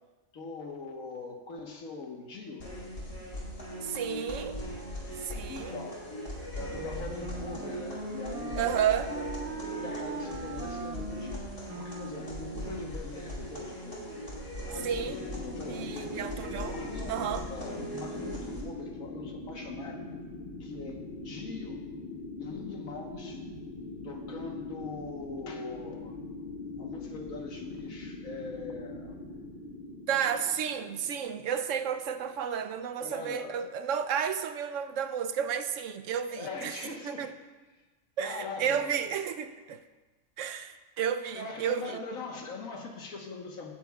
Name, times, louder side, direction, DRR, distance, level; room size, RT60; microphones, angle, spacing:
voice 1, 0.3-2.7 4.9-5.0 5.5-6.1 6.5-9.3 9.7-14.3 14.7-16.3 16.7-20.1 20.6-21.9 22.4-23.5 24.0-26.2 26.8-29.2 33.0-33.8 36.3-37.3 38.2-38.9 41.3-43.7, left 3 dB, 85° left, 1 dB, 1.7 m, -42 dB
sound 1, 2.6-18.6, equal, 60° left, 3.0 m, -39 dB
voice 2, 3.8-4.6 5.2-5.8 8.6-9.1 14.7-15.2 15.7-16.8 17.1-17.4 30.1-37.3 38.2-39.8 40.4-42.0, right 8 dB, 70° right, 10 dB, 0.9 m, -32 dB
Wind instrument woodwind instrument, 6.8-12.9, right 4 dB, 50° right, 0.4 m, -41 dB
sound 2, 14.7-32.4, left 2 dB, 40° left, 1.7 m, -42 dB
16.5 x 9.9 x 2.4 m, 1.2 s
omnidirectional pair, 1.4 m